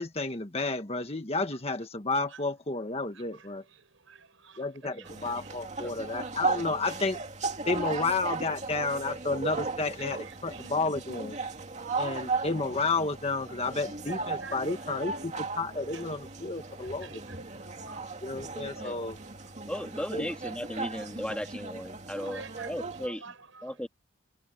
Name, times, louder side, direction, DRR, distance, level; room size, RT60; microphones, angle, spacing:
voice 1, 0.0-3.6 4.6-7.2 7.7-11.4 11.9-17.2 18.2-19.2 20.1-20.3, left 3 dB, 30° left, 1.5 m, -31 dB
voice 2, 3.1-5.9 6.8-6.9 10.0-10.7 11.7-12.2 14.1-15.5 15.8-16.0 16.8-18.1 18.7-19.3 19.6-19.8 21.4-21.5 22.2-23.9, right 4 dB, 75° right, 6.3 m, -49 dB
sound 1, 5.0-23.1, right 4 dB, 35° right, 2.5 m, -36 dB
voice 3, 19.7-23.2 23.6-23.9, equal, 5° left, 2.0 m, -36 dB
head